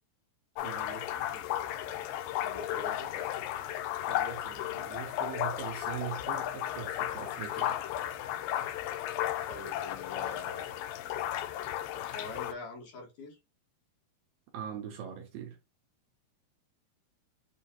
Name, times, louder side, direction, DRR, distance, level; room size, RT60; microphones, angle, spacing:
sound 1, 0.6-12.5, left 12 dB, 85° left, 1.9 m, -34 dB
voice 1, 0.6-1.5 4.1-7.8 14.5-15.6, right 10 dB, 75° right, 2.1 m, -42 dB
voice 2, 2.4-3.1 9.5-10.9 11.9-13.4, left 2 dB, 55° left, 2.4 m, -44 dB
6.8 x 2.8 x 2.9 m
omnidirectional pair, 4.5 m